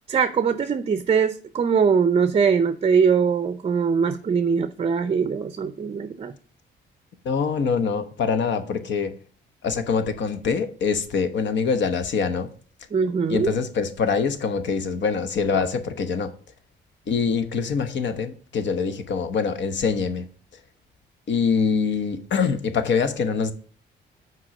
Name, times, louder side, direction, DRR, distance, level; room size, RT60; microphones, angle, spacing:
voice 1, 0.1-6.3 12.9-13.5, right 6 dB, 30° right, 0.5 m, -22 dB
voice 2, 7.2-9.1 9.6-12.5 13.3-16.3 17.1-20.3 21.3-23.5, left 5 dB, 65° left, 1.0 m, -24 dB
6.2 x 4.6 x 6.2 m
cardioid pair, 90°, 20 cm